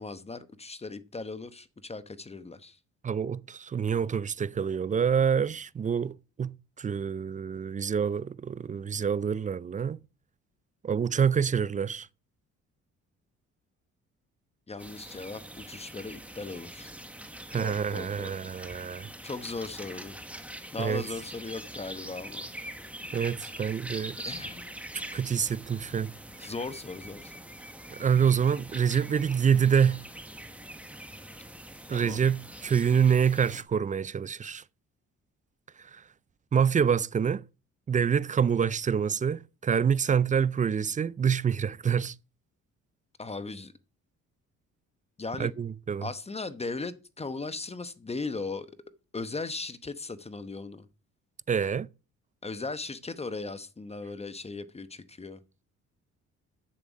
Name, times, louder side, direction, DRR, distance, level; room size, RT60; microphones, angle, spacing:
voice 1, 0.0-2.8 14.7-15.4 15.7-16.9 17.5-18.3 19.2-20.2 20.7-22.5 24.2-24.7 26.4-27.3 31.9-32.2 43.2-43.7 45.2-45.5 46.0-48.7 49.1-50.9 52.4-55.4, left 3 dB, 20° left, 0.9 m, -37 dB
voice 2, 3.0-10.0 10.8-12.1 17.5-19.1 20.8-21.0 23.1-24.2 25.1-26.1 28.0-30.0 31.9-34.6 35.9-36.0 36.5-37.4 37.9-42.1 45.4-46.1 51.5-51.9, right 7 dB, 25° right, 0.4 m, -26 dB
sound 1, 14.8-33.6, right 1 dB, 5° right, 1.2 m, -43 dB
8.9 x 7.3 x 5.2 m
cardioid pair, 90°, 30 cm